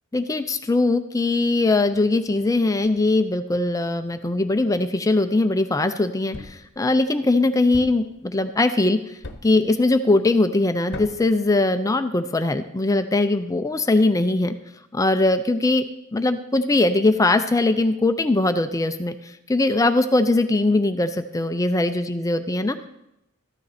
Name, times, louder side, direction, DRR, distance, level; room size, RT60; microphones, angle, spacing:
voice 1, 0.1-9.1 9.4-14.5 14.9-15.8 16.1-22.9, left 2 dB, 15° left, 9 dB, 0.5 m, -21 dB
Thump thud, 6.3-6.7 7.7-8.1 9.2-9.6 10.9-11.3, left 2 dB, 55° left, 0.9 m, -37 dB
13.5 x 9.5 x 4.2 m, 0.84 s
head